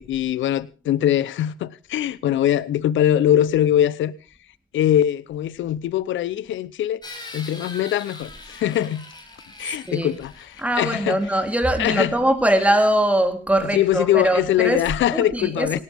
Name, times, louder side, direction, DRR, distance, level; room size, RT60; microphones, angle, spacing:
voice 1, 0.0-4.1 4.7-7.0 7.3-9.1 9.6-11.2 11.8-12.1 13.7-15.8, left 11 dB, 75° left, 0.9 m, -22 dB
sound 1, 7.0-11.7, left 2 dB, 20° left, 4.8 m, -42 dB
voice 2, 9.7-10.1 10.6-14.8 15.1-15.8, right 1 dB, 5° right, 3.6 m, -21 dB
18.0 x 17.5 x 3.6 m
cardioid pair, 90°, 20 cm